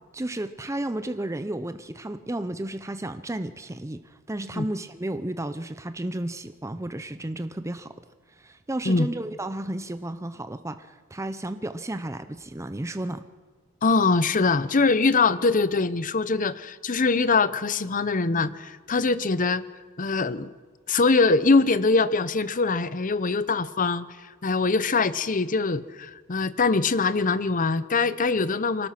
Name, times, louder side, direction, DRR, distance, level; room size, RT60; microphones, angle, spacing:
voice 1, 0.1-7.9 8.3-13.3, right 1 dB, 15° right, 10 dB, 0.6 m, -33 dB
voice 2, 13.8-19.6 20.0-20.5 20.9-24.0 24.4-28.9, left 4 dB, 35° left, 15 dB, 0.7 m, -23 dB
24.0 x 18.5 x 5.9 m, 1.5 s
head